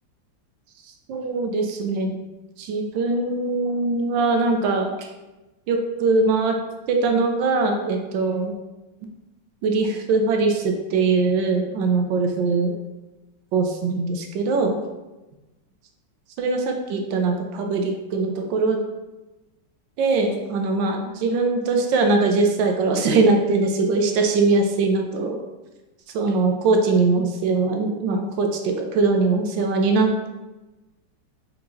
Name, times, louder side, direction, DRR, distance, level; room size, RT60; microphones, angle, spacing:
voice 1, 1.1-2.1 2.6-5.1 5.7-6.6 6.9-8.5 9.6-12.7 13.5-14.8 16.4-18.8 20.0-25.4 26.1-30.3, right 3 dB, 80° right, 3 dB, 1.3 m, -21 dB
3.7 x 3.5 x 3.0 m, 1.1 s
omnidirectional pair, 2.0 m